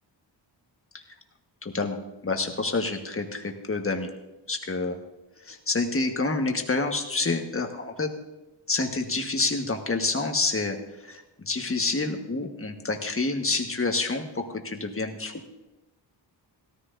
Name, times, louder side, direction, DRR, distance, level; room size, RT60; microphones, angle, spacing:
voice 1, 1.6-2.0 2.2-4.1 4.5-5.0 5.4-8.1 8.7-10.8 11.0-15.3, left 3 dB, 30° left, 4 dB, 1.5 m, -28 dB
17.5 x 13.5 x 2.7 m, 1.0 s
cardioid pair, 80°, 47 cm